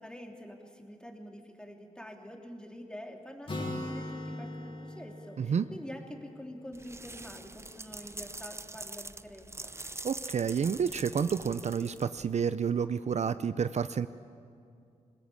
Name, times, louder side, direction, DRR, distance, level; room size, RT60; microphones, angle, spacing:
voice 1, 0.0-9.7, equal, 5° left, 2 dB, 3.1 m, -46 dB
Acoustic guitar, 3.5-7.2, left 1 dB, 45° left, 3.2 m, -40 dB
sound 1, 6.7-12.3, right 2 dB, 20° right, 0.7 m, -44 dB
voice 2, 10.0-14.1, right 6 dB, 60° right, 13 dB, 0.5 m, -29 dB
21.5 x 20.5 x 8.6 m, 2.4 s
cardioid pair, 65°, 13 cm